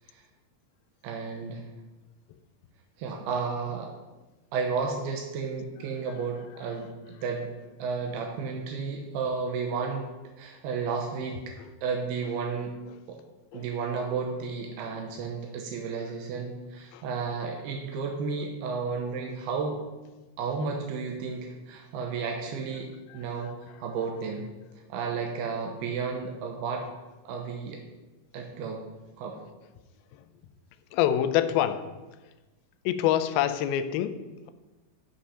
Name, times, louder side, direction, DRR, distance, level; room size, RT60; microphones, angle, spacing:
voice 1, 1.0-1.6 3.0-3.9 4.5-7.5 7.8-10.1 10.4-11.5 11.8-12.8 13.1-13.2 13.5-19.8 20.4-24.5 24.9-26.9 27.3-27.8 28.3-28.8 29.2-29.4, right 5 dB, 80° right, 2 dB, 2.8 m, -32 dB
voice 2, 23.1-23.5 30.9-31.9 32.9-34.5, left 11 dB, 80° left, 10 dB, 2.3 m, -27 dB
8.7 x 5.7 x 5.6 m, 1.2 s
omnidirectional pair, 4.5 m